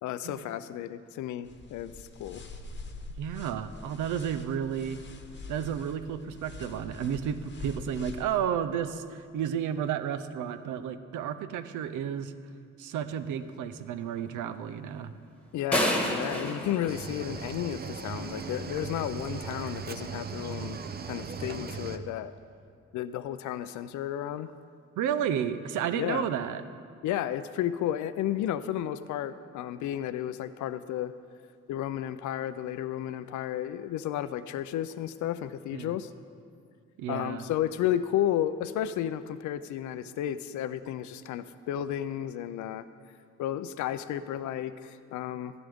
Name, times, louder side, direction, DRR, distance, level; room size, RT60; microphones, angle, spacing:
voice 1, 0.0-2.4 15.5-22.3 22.9-24.5 25.9-26.2 27.0-31.1 31.7-36.1 37.1-42.9 43.4-45.5, left 11 dB, 70° left, 13 dB, 0.5 m, -32 dB
sound 1, 1.5-8.4, left 3 dB, 35° left, 1.1 m, -44 dB
voice 2, 3.2-5.0 5.5-12.3 12.8-15.1 25.0-26.6 35.7-36.0 37.0-37.4, right 8 dB, 80° right, 12 dB, 0.6 m, -32 dB
sound 2, 15.7-17.9, left 1 dB, 5° left, 1.5 m, -29 dB
Cricket / Waves surf, 16.9-22.0, right 5 dB, 30° right, 0.6 m, -38 dB
14.0 x 11.0 x 3.5 m, 2.3 s
cardioid pair, 90°, 30 cm